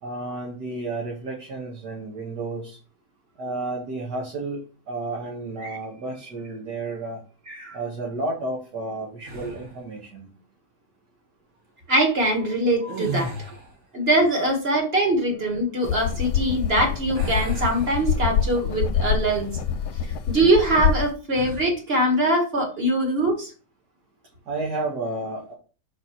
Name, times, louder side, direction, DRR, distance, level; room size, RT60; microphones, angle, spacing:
voice 1, 0.0-2.8 3.4-7.2 7.7-10.3 24.5-25.5, right 2 dB, 70° right, -2 dB, 2.0 m, -31 dB
sound 1, 9.2-9.9 12.8-13.9 17.1-18.6 19.1-19.3 21.3-21.8, right 2 dB, 50° right, 2.2 m, -36 dB
voice 2, 11.9-13.3 13.9-19.5 20.3-23.5, right 1 dB, 35° right, 1 dB, 2.0 m, -22 dB
sound 2, 15.8-21.1, left 7 dB, 80° left, 1.2 m, -25 dB
4.9 x 4.1 x 5.9 m, 0.37 s
omnidirectional pair, 1.8 m